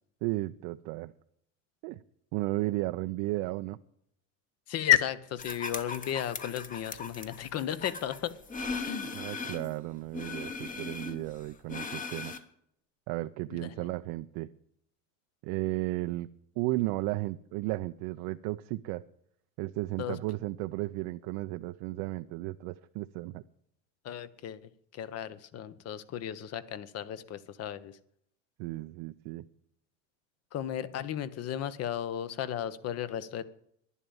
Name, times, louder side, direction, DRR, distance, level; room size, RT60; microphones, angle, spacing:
voice 1, 0.2-1.1 1.8-2.0 2.3-3.8 9.1-12.3 13.1-14.5 15.4-16.3 16.6-19.0 19.6-23.4 28.6-29.4, right 19 dB, 65° right, 9 dB, 0.6 m, -34 dB
voice 2, 4.7-8.4 8.8-9.1 13.5-13.9 20.0-20.2 24.0-24.6 24.9-28.0 30.5-33.4, left 10 dB, 40° left, 15 dB, 1.0 m, -33 dB
sound 1, 5.4-9.7 10.1-12.4, left 4 dB, 20° left, 1.1 m, -39 dB
11.0 x 10.5 x 7.0 m, 0.70 s
supercardioid pair, 130°, 36 cm